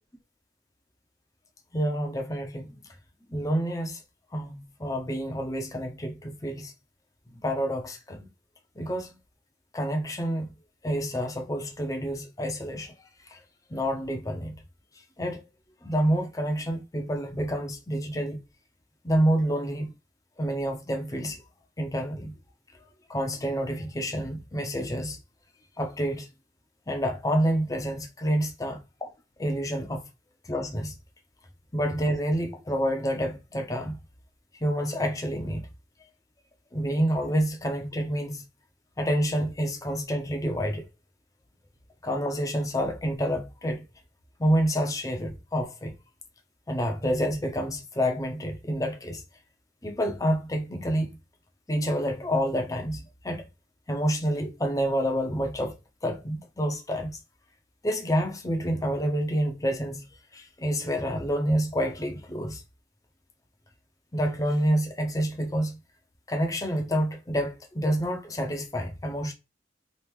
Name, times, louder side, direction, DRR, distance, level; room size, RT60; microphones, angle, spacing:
voice 1, 1.7-2.8 3.3-4.0 4.3-6.7 7.4-8.3 8.8-9.2 9.7-10.5 10.8-12.9 13.3-13.4 13.7-14.6 15.2-15.4 15.8-18.4 19.0-19.9 20.4-21.4 21.8-22.3 23.1-25.2 25.8-26.3 26.9-29.1 29.4-30.0 30.5-31.0 31.7-34.0 34.6-35.7 36.7-38.4 39.0-40.9 42.0-43.8 44.4-45.9 46.7-49.2 49.8-51.2 51.7-53.5 53.9-55.7 56.0-57.2 57.8-60.0 60.3-62.6 64.1-65.8 66.3-69.3, equal, 20° left, 0.6 m, -28 dB
3.0 x 2.5 x 3.4 m
head